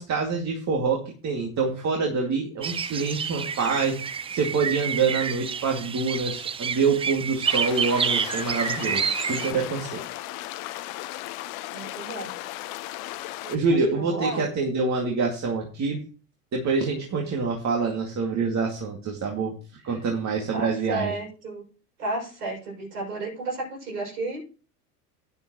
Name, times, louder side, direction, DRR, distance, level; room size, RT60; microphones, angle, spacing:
voice 1, 0.0-10.0 13.4-16.0 16.5-19.5 19.8-21.1, right 4 dB, 35° right, 0 dB, 2.4 m, -26 dB
sound 1, 2.6-9.5, right 7 dB, 15° right, 0.4 m, -29 dB
sound 2, 7.4-13.6, left 16 dB, 60° left, 1.1 m, -36 dB
voice 2, 11.7-12.3 13.9-14.4 19.9-20.0 20.5-21.6 22.0-24.4, right 2 dB, 80° right, -2 dB, 6.6 m, -32 dB
12.0 x 9.9 x 3.1 m, 0.37 s
hypercardioid pair, 80°, 47 cm